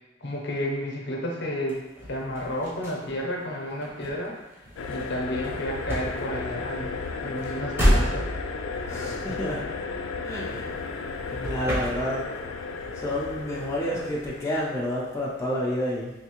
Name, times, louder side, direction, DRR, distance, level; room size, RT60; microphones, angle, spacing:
voice 1, 0.2-1.8 2.1-4.4 4.9-8.3, equal, 60° left, -1 dB, 0.7 m, -31 dB
sound 1, 1.7-11.0 11.3-12.5 12.8-14.3, equal, 10° right, 0.8 m, -31 dB
sound 2, 4.8-15.1, left 4 dB, 90° left, 0.3 m, -34 dB
voice 2, 8.9-9.6 10.2-10.7 11.3-12.2 13.0-16.1, equal, 15° left, -5 dB, 0.4 m, -29 dB
3.3 x 2.7 x 2.9 m, 1.1 s
head